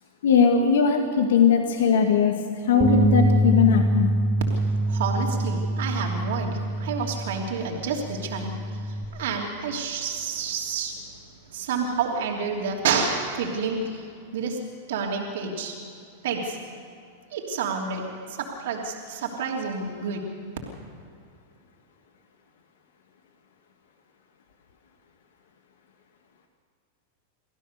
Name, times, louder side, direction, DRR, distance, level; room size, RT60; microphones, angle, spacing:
voice 1, 0.2-4.1, left 6 dB, 80° left, 4 dB, 1.9 m, -20 dB
Bass guitar, 2.8-9.1, right 1 dB, 20° right, 3.3 m, -25 dB
voice 2, 4.9-10.9 11.5-14.1 14.3-14.6 14.9-15.7 16.2-16.6 17.3-20.2, right 5 dB, 70° right, -1 dB, 3.1 m, -29 dB
25.0 x 16.0 x 6.8 m, 2.4 s
hypercardioid pair, 110°, 0 cm